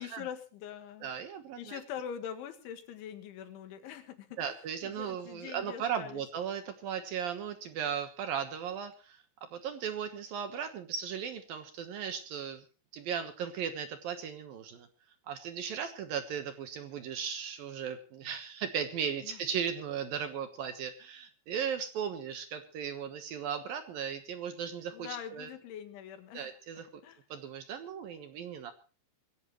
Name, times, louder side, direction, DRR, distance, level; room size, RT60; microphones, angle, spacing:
voice 1, 0.0-1.1 1.6-4.6 4.8-6.2 19.2-19.4 24.9-26.6 27.0-27.2, left 9 dB, 85° left, 8 dB, 4.2 m, -43 dB
voice 2, 1.0-1.8 4.4-9.2 9.5-12.6 12.9-14.9 15.3-25.5 26.3-26.9 27.3-28.7, right 8 dB, 65° right, 8 dB, 2.6 m, -37 dB
22.0 x 16.5 x 3.1 m, 0.34 s
omnidirectional pair, 5.3 m